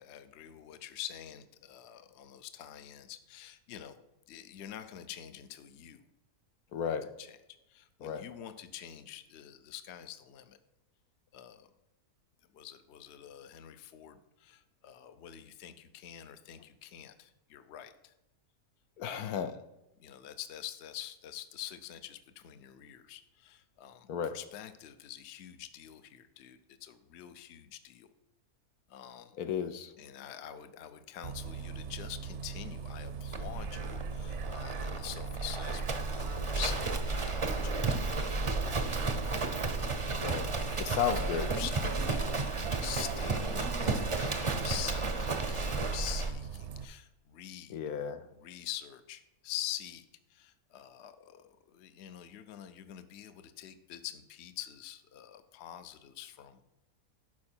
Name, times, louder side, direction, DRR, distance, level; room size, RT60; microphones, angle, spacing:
voice 1, 0.0-4.0 4.3-6.0 6.8-7.4 7.7-10.6 11.3-11.7 12.5-18.1 19.2-19.5 20.0-28.1 28.9-29.4 30.0-40.1 40.7-47.8 48.4-50.0 50.3-56.7, left 11 dB, 60° left, 10 dB, 0.8 m, -46 dB
voice 2, 6.7-7.1 8.0-8.3 19.0-19.6 24.1-24.4 29.4-29.9 40.2-40.5 40.8-41.5 47.7-48.2, left 8 dB, 85° left, 9 dB, 1.2 m, -33 dB
Bus, 31.2-46.8, right 6 dB, 60° right, 0.8 m, -41 dB
Livestock farm animals working animals, 33.3-46.3, right 3 dB, 35° right, 0.5 m, -33 dB
12.0 x 4.7 x 4.4 m, 0.93 s
omnidirectional pair, 1.5 m